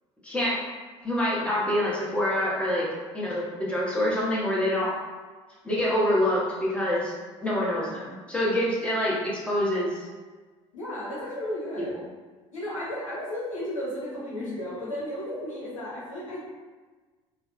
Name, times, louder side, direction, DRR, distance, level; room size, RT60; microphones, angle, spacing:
voice 1, 0.2-0.6 1.0-2.9 3.1-4.9 5.6-7.1 7.4-10.0, left 1 dB, 5° left, -7 dB, 1.1 m, -26 dB
voice 2, 10.7-12.0 12.5-16.4, left 1 dB, 85° left, -8 dB, 0.8 m, -34 dB
3.4 x 2.2 x 2.5 m, 1.3 s
figure-of-eight pair, 60°, 17 cm